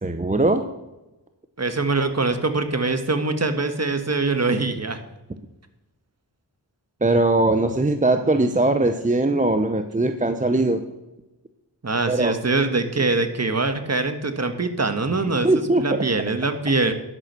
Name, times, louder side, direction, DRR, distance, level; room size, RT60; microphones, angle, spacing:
voice 1, 0.0-0.7 7.0-10.8 12.1-12.3 15.4-16.1, right 2 dB, 20° right, 8 dB, 0.8 m, -20 dB
voice 2, 1.6-5.0 11.8-15.5 15.8-16.9, right 3 dB, 35° right, 8 dB, 1.4 m, -23 dB
11.5 x 5.9 x 6.7 m, 1.0 s
cardioid pair, 40°, 43 cm